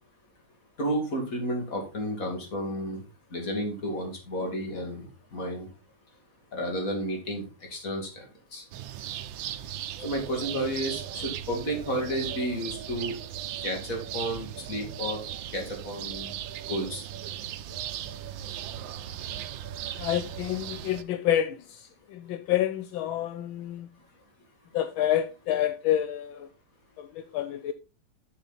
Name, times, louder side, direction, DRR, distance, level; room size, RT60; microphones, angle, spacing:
voice 1, 0.8-3.0 3.3-5.1 5.3-5.7 6.5-7.5 7.7-8.3 8.5-8.6 10.0-13.1 13.6-15.2 15.5-16.3 16.7-17.0, equal, 40° left, 2.9 m, -31 dB
sound 1, 8.7-21.0, right 11 dB, 75° right, 1.4 m, -37 dB
voice 2, 20.0-24.0 24.7-26.5 27.0-27.7, left 11 dB, 80° left, 1.4 m, -28 dB
8.6 x 6.8 x 4.1 m
omnidirectional pair, 2.2 m